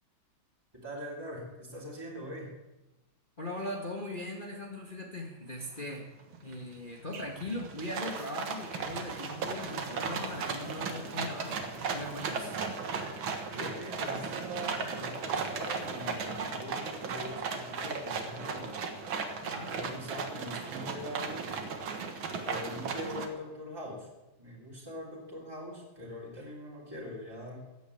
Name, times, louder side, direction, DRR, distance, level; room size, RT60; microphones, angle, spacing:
voice 1, 0.7-2.6 13.5-18.8 19.6-21.5 22.4-24.1 24.4-27.6, equal, 10° right, -4 dB, 3.4 m, -42 dB
voice 2, 3.4-6.1 6.4-11.5 11.9-12.6 19.4-19.7, left 1 dB, 25° left, -1 dB, 1.8 m, -39 dB
sound 1, 5.9-6.0 6.3-6.7 7.1-23.3, right 5 dB, 80° right, 2.3 m, -36 dB
Bowed string instrument, 8.8-14.0, equal, 80° left, 5.8 m, -54 dB
14.5 x 9.3 x 8.5 m, 1.0 s
omnidirectional pair, 2.1 m